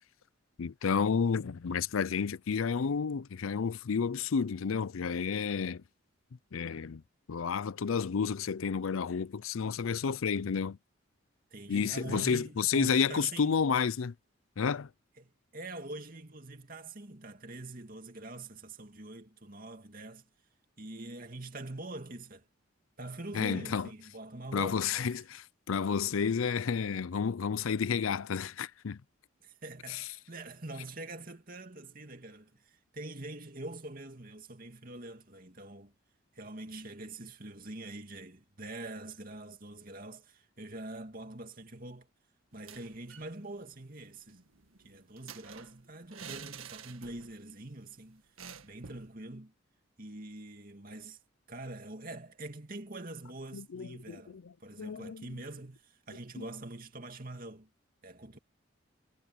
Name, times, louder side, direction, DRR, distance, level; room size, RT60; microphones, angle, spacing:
voice 1, 0.6-5.8 6.5-7.0 7.3-10.8 11.7-14.1 14.6-14.9 23.3-23.9 24.5-29.0 29.9-30.0 53.5-55.4 56.4-56.5, left 6 dB, 80° left, 0.5 m, -31 dB
voice 2, 11.5-13.6 15.2-20.2 20.8-22.4 23.0-25.1 29.4-35.9 36.3-42.1 42.5-44.4 44.8-48.2 48.6-49.5 50.0-51.2 51.5-57.7 58.0-58.4, right 2 dB, 45° right, 2.6 m, -44 dB
sound 1, 42.5-43.3 43.6-43.7 44.0-47.5 47.7-47.9 48.4-49.1, right 7 dB, 85° right, 1.8 m, -49 dB
head